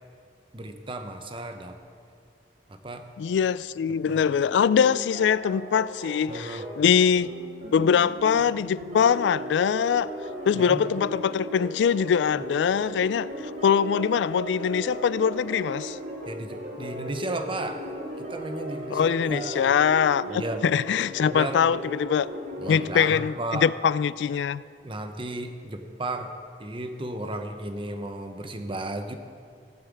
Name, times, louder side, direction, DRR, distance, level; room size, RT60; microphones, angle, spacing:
voice 1, 0.5-1.8 2.7-3.1 4.1-4.3 6.3-6.7 10.5-10.8 16.3-17.8 18.2-19.7 20.3-20.7 21.3-21.6 22.6-23.7 24.8-26.3 26.6-29.1, right 2 dB, 30° right, 0.9 m, -34 dB
voice 2, 3.2-7.3 7.7-10.1 10.5-13.3 13.6-16.0 18.9-22.3 22.7-24.6, left 7 dB, 80° left, 0.3 m, -23 dB
sound 1, 4.3-22.9, right 1 dB, 50° right, 2.4 m, -37 dB
16.5 x 5.7 x 8.4 m
head